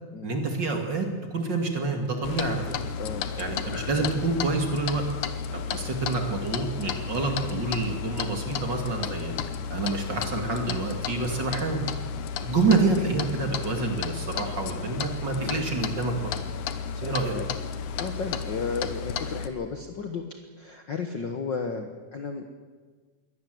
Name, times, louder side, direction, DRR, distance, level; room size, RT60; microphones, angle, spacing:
voice 1, 0.2-2.6 3.4-5.0 5.5-9.3 9.7-11.8 12.4-16.3 17.0-17.5, right 3 dB, 40° right, 3 dB, 2.8 m, -27 dB
Clock, 2.2-19.5, left 6 dB, 85° left, 2.5 m, -33 dB
voice 2, 16.9-17.4 18.0-20.2 20.6-22.4, left 5 dB, 50° left, 5 dB, 1.5 m, -33 dB
23.0 x 18.0 x 7.8 m, 1.5 s
omnidirectional pair, 3.4 m